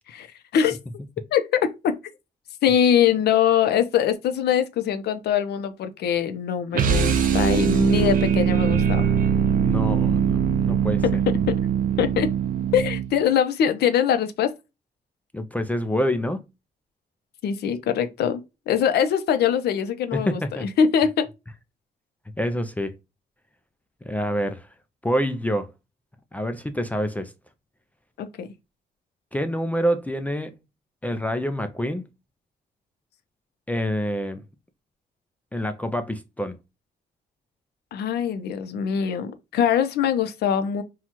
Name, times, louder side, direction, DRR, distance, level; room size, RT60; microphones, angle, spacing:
voice 1, 1.3-1.9 2.6-9.1 12.0-12.3 12.7-14.5 17.4-21.3 28.2-28.5 37.9-40.8, left 8 dB, 85° left, 0.7 m, -22 dB
sound 1, 6.7-13.2, right 7 dB, 60° right, 0.6 m, -21 dB
voice 2, 9.6-11.0 15.3-16.4 20.1-20.7 22.4-23.0 24.1-24.7 25.0-25.7 26.3-27.3 29.3-30.5 31.0-32.1 33.7-34.4 35.5-36.5, equal, 10° left, 0.4 m, -26 dB
5.8 x 2.3 x 2.9 m
cardioid pair, 145°, 17 cm